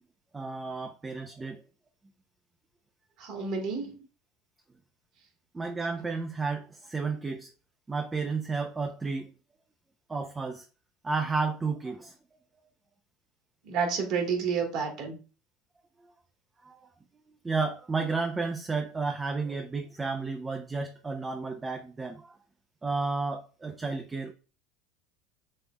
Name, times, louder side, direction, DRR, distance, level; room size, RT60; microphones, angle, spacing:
voice 1, 0.3-1.6 5.5-7.5 7.9-9.3 10.1-10.6 11.0-12.1 16.6-16.9 17.4-22.4 22.8-24.3, right 4 dB, 20° right, 0.6 m, -32 dB
voice 2, 3.2-4.0 13.6-15.2, right 5 dB, 60° right, 1.7 m, -30 dB
5.4 x 3.4 x 2.2 m
hypercardioid pair, 90°, 0 cm